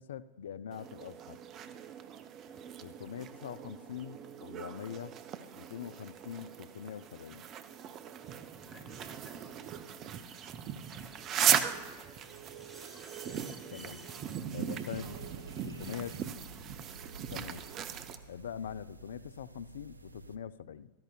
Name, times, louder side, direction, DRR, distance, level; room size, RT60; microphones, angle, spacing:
voice 1, 0.0-1.4 2.8-5.1 5.6-7.4 13.7-14.0 14.5-15.1 15.6-16.2 17.3-17.6 18.3-20.9, left 8 dB, 60° left, 16 dB, 0.3 m, -43 dB
sound 1, 0.7-18.2, right 9 dB, 35° right, 0.6 m, -38 dB
sound 2, 8.4-16.0, right 2 dB, 15° right, 1.7 m, -57 dB
voice 2, 8.6-9.5 12.9-15.2, left 3 dB, 20° left, 2 dB, 1.9 m, -57 dB
sound 3, 14.9-20.4, right 3 dB, 80° right, 0.3 m, -50 dB
16.0 x 13.0 x 2.3 m, 1.4 s
figure-of-eight pair, 90°, 0 cm